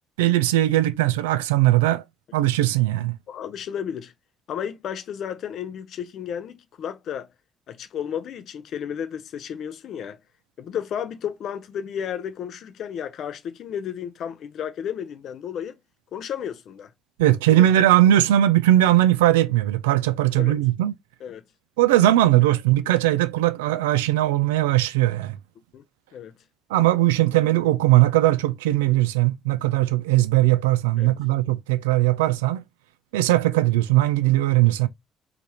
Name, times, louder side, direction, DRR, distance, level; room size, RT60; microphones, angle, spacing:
voice 1, 0.2-2.0 2.3-3.2 17.2-20.9 21.8-25.4 26.7-32.6 33.1-34.9, right 14 dB, 75° right, 0.4 m, -19 dB
voice 2, 3.3-4.1 4.5-7.3 7.7-10.2 10.6-15.8 16.1-16.9 17.5-17.9 20.4-20.6 21.2-21.4 25.7-25.8 26.1-26.3 31.0-31.1, left 8 dB, 55° left, 0.5 m, -33 dB
4.8 x 3.4 x 2.9 m
figure-of-eight pair, 45°, 0 cm